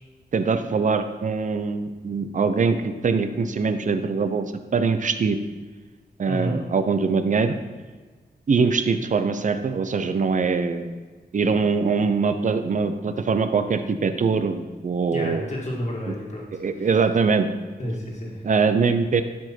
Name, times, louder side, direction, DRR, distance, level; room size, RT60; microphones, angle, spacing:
voice 1, 0.3-4.5 4.7-5.4 6.2-7.6 8.5-11.0 11.3-15.5 16.1-16.2 16.5-17.5 18.4-19.2, right 5 dB, 50° right, 9 dB, 0.6 m, -22 dB
voice 2, 6.3-6.6 15.1-16.5 16.8-16.9 17.8-18.5, equal, 45° left, -2 dB, 1.8 m, -30 dB
11.5 x 5.0 x 4.4 m, 1.4 s
wide cardioid pair, 145°, 17 cm